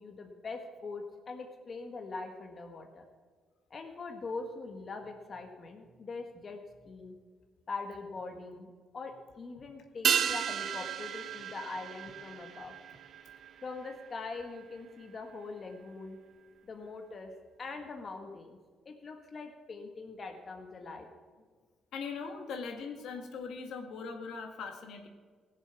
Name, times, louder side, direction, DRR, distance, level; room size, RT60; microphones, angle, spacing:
voice 1, 0.0-3.0 3.7-6.6 6.8-7.1 7.7-12.7 13.6-16.2 16.6-17.3 17.6-18.6 18.8-21.1, left 3 dB, 45° left, 4 dB, 1.6 m, -42 dB
sound 1, 10.0-14.8 15.0-15.1, right 8 dB, 60° right, 0.5 m, -34 dB
voice 2, 21.9-25.1, left 5 dB, 75° left, 4 dB, 1.8 m, -40 dB
16.5 x 7.5 x 7.1 m, 1.5 s
cardioid pair, 90°, 0 cm